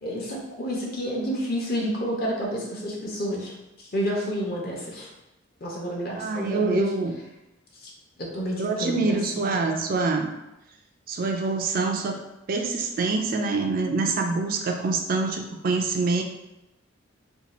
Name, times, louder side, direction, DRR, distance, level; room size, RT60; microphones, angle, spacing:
voice 1, 0.0-5.1 5.6-6.9 7.8-7.9 8.2-9.5, equal, 50° left, -3 dB, 0.8 m, -30 dB
voice 2, 6.1-7.1 8.6-10.3 11.1-12.2 12.5-16.2, right 3 dB, 45° right, 3 dB, 0.3 m, -25 dB
2.7 x 2.3 x 4.1 m, 0.94 s
head